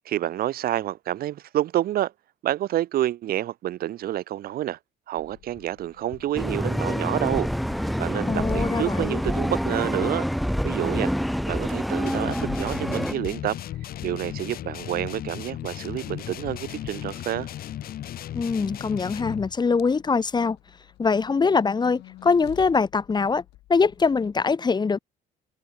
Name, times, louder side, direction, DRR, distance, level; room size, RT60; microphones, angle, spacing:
voice 1, 0.0-2.1 2.4-4.8 5.1-7.5 8.0-10.3 10.6-11.1 11.5-13.6 14.0-17.5, right 13 dB, 65° right, 1.0 m, -28 dB
sound 1, 5.1-24.4, left 16 dB, 80° left, 5.2 m, -49 dB
sound 2, 6.4-13.1, equal, ahead, 0.6 m, -27 dB
voice 2, 8.3-9.2 18.3-20.6 21.0-23.4 23.7-25.0, left 5 dB, 25° left, 1.7 m, -23 dB
sound 3, 12.1-19.6, left 12 dB, 60° left, 2.6 m, -36 dB
cardioid pair, 110°, 17 cm